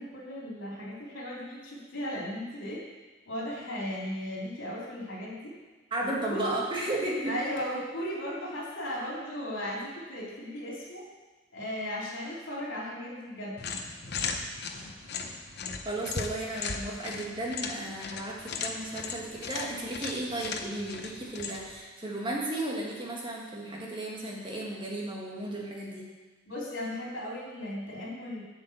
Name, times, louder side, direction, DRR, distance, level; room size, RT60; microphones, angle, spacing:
voice 1, 0.0-2.8 3.3-5.5 6.0-6.5 7.2-11.0 11.5-13.6 26.5-28.4, equal, 85° left, -3 dB, 3.0 m, -36 dB
voice 2, 5.9-7.4 15.8-26.1, right 1 dB, 25° right, -2 dB, 1.7 m, -34 dB
sound 1, 13.6-21.8, left 5 dB, 55° left, 0.8 m, -37 dB
7.9 x 5.8 x 7.8 m, 1.3 s
head